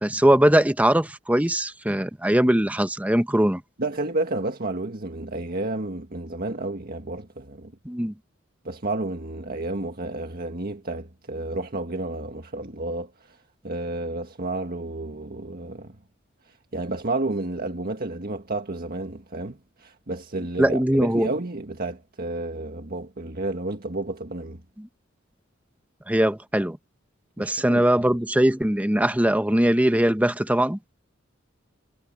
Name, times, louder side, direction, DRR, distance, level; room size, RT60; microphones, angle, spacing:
voice 1, 0.0-3.6 7.8-8.1 20.6-21.3 24.8-24.9 26.1-26.8 27.4-30.8, right 1 dB, 5° right, 0.9 m, -21 dB
voice 2, 3.8-7.7 8.6-13.4 13.6-16.0 16.7-24.6 27.4-27.8, right 2 dB, 50° right, 1.7 m, -31 dB
head